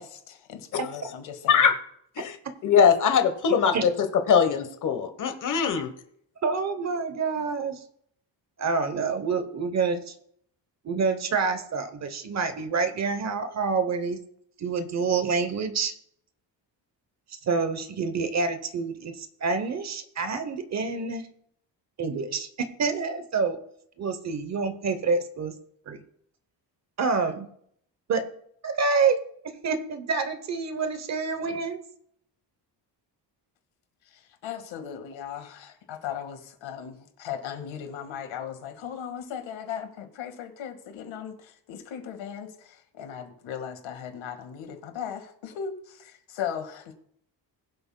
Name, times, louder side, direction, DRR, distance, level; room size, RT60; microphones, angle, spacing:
voice 1, 0.0-1.7 34.1-46.9, left 8 dB, 90° left, 1.8 m, -37 dB
voice 2, 2.6-3.9 4.3-5.9, left 7 dB, 40° left, 1.1 m, -21 dB
voice 3, 6.4-7.8 8.6-10.1 10.8-14.2 14.6-15.9 17.4-21.3 22.0-23.6 24.0-25.5 25.9-26.0 27.0-27.5 28.1-28.3 28.6-31.8, right 4 dB, 35° right, 0.8 m, -27 dB
21.0 x 7.5 x 2.2 m
cardioid pair, 170°, 45 cm